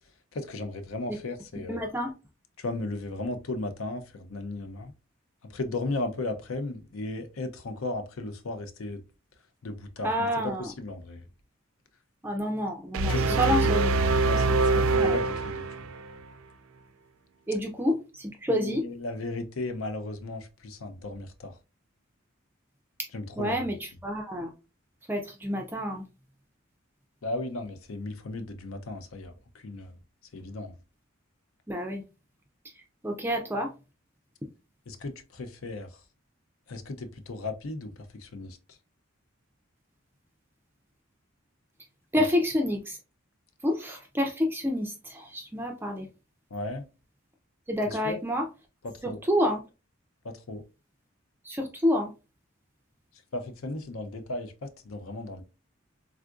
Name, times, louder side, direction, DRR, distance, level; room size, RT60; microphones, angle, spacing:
voice 1, 0.3-1.8 2.6-4.9 5.4-9.0 9.6-11.3 13.1-13.8 14.2-15.7 18.5-21.6 23.1-23.7 27.2-30.0 30.3-30.8 34.9-36.0 36.7-38.8 42.2-42.3 46.5-46.9 47.9-48.2 48.8-49.2 50.2-50.6 53.3-55.4, left 2 dB, 85° left, 0.6 m, -35 dB
voice 2, 1.7-2.1 10.0-10.7 12.2-13.9 15.0-15.1 17.5-18.8 23.4-24.5 25.1-26.0 31.7-32.0 33.0-33.7 42.1-43.0 43.6-46.1 47.7-48.4 49.0-49.6 51.4-52.1, equal, 10° right, 0.3 m, -28 dB
sound 1, 12.9-16.1, right 3 dB, 80° right, 0.4 m, -24 dB
3.5 x 2.4 x 2.3 m
head